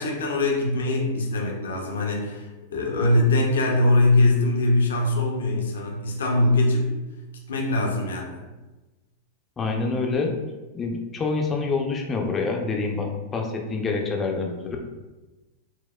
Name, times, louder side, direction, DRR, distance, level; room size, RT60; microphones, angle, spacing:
voice 1, 0.0-6.9 7.5-8.5, left 2 dB, 70° left, 1 dB, 0.6 m, -22 dB
voice 2, 9.6-10.3 10.7-14.8, left 4 dB, 20° left, 1 dB, 0.5 m, -26 dB
4.3 x 2.0 x 2.2 m, 1.1 s
figure-of-eight pair, 90°, 0 cm